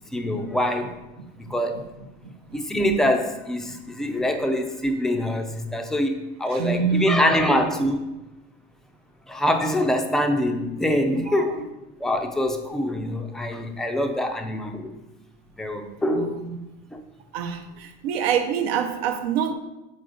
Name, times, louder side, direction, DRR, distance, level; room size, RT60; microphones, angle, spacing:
voice 1, 0.1-0.9 1.4-1.8 2.5-8.0 9.3-11.7 12.0-15.0 15.6-16.4 16.9-17.0, left 1 dB, ahead, 0.3 m, -24 dB
voice 2, 2.2-2.6 3.7-3.8 6.5-7.7 11.1-11.7 16.1-16.6 17.3-19.5, right 7 dB, 80° right, 0.8 m, -27 dB
6.4 x 4.1 x 3.8 m
supercardioid pair, 125°, 30 cm